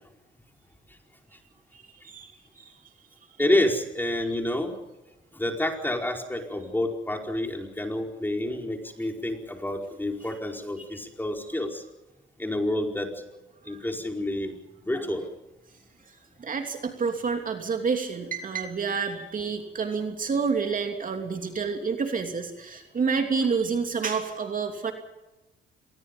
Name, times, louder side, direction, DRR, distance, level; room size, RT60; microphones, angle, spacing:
voice 1, 1.7-2.7 10.9-11.0 11.5-11.6 13.7-13.8 16.4-24.9, right 5 dB, 45° right, 4 dB, 3.0 m, -29 dB
voice 2, 3.4-4.7 5.3-11.8 12.4-15.3, left 1 dB, 10° left, 2 dB, 4.9 m, -29 dB
26.0 x 21.5 x 5.5 m, 0.98 s
cardioid pair, 90°, 20 cm